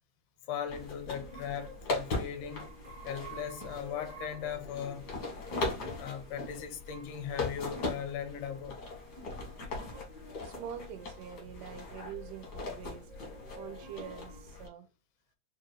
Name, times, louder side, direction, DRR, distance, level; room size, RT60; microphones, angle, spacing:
voice 1, 0.5-2.7 3.0-5.1 6.0-8.8, left 8 dB, 90° left, 2.3 m, -38 dB
sound 1, 0.7-14.7, left 3 dB, 70° left, 0.9 m, -40 dB
sound 2, 1.2-1.8 2.4-4.6 5.1-5.2 5.5-5.6 6.5-7.1 8.1-8.6 9.9-10.1 10.9-11.3 12.1-12.7 13.1-14.4, right 2 dB, 60° right, 0.9 m, -51 dB
voice 2, 9.1-9.5 10.4-13.1 13.6-14.9, right 9 dB, 85° right, 2.2 m, -46 dB
5.1 x 2.3 x 3.2 m
omnidirectional pair, 3.6 m